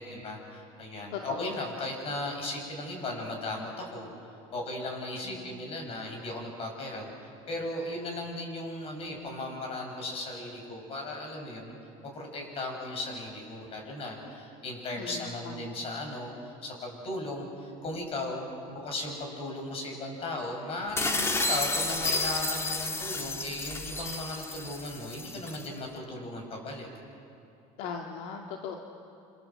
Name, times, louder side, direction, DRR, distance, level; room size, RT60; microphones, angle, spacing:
voice 1, 0.0-4.1 4.5-7.1 7.5-11.7 12.0-26.9, left 2 dB, 40° left, 2 dB, 7.9 m, -37 dB
voice 2, 1.1-1.5 5.2-5.4 15.0-15.7 27.8-28.8, left 6 dB, 70° left, 2 dB, 2.1 m, -39 dB
sound 1, 21.0-25.7, left 2 dB, 15° left, 1.9 m, -31 dB
27.5 x 27.5 x 7.9 m, 2.8 s
cardioid pair, 130°, 15 cm